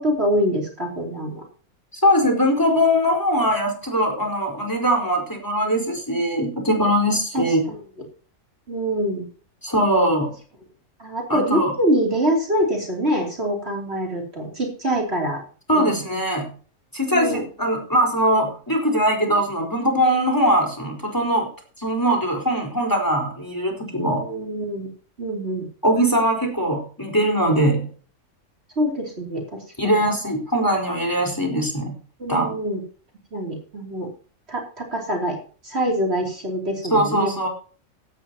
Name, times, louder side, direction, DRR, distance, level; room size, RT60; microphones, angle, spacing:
voice 1, 0.0-1.4 7.3-7.8 8.7-9.3 11.0-15.4 15.7-16.0 17.1-17.4 24.2-24.9 25.2-25.7 28.8-30.0 32.2-32.8 33.3-34.1 34.5-35.4 35.6-37.3, equal, 50° right, 1 dB, 3.4 m, -25 dB
voice 2, 1.9-7.6 9.6-10.3 11.3-11.7 15.7-16.5 16.9-21.5 21.8-24.2 25.8-27.9 29.8-31.9 32.3-32.5 36.9-37.5, equal, 15° left, 1 dB, 4.3 m, -21 dB
16.5 x 12.5 x 2.9 m, 0.40 s
omnidirectional pair, 1.4 m